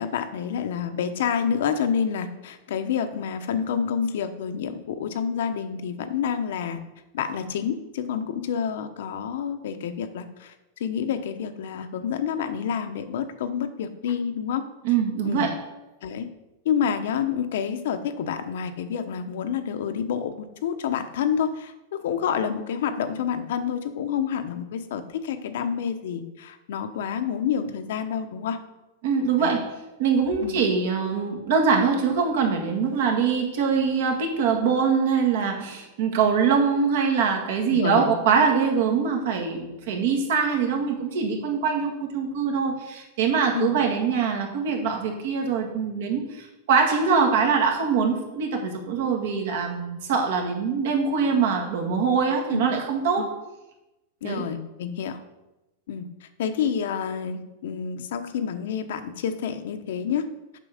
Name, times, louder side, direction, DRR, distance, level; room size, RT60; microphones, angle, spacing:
voice 1, 0.0-6.8 7.1-14.6 15.2-15.5 16.0-16.3 16.6-28.6 29.4-29.6 30.4-30.6 37.7-38.1 43.5-43.8 52.5-52.7 53.2-53.3 54.2-55.2 55.9-60.3, left 7 dB, 70° left, 9 dB, 0.8 m, -28 dB
voice 2, 14.8-15.6 29.0-29.7 30.0-53.3 54.2-54.5, right 6 dB, 60° right, 2 dB, 1.8 m, -23 dB
7.6 x 6.0 x 5.0 m, 0.98 s
supercardioid pair, 160°, 0 cm